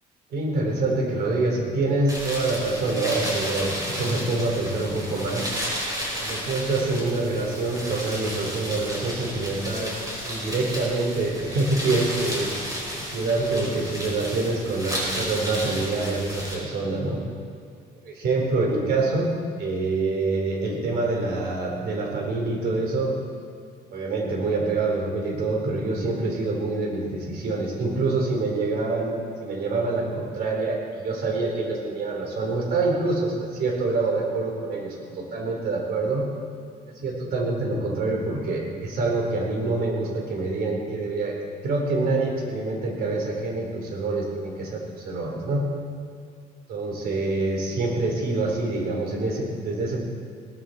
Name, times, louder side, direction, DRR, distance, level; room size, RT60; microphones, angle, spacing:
voice 1, 0.3-5.5 6.1-9.9 10.2-12.5 12.9-17.2 18.2-19.3 19.6-23.2 23.9-29.1 29.4-36.2 36.8-41.4 41.6-45.6 46.7-50.1, right 3 dB, 65° right, 0 dB, 3.9 m, -26 dB
sound 1, 2.1-16.6, equal, 20° right, 5.0 m, -33 dB
18.0 x 14.5 x 4.3 m, 2.2 s
cardioid pair, 110°, 17 cm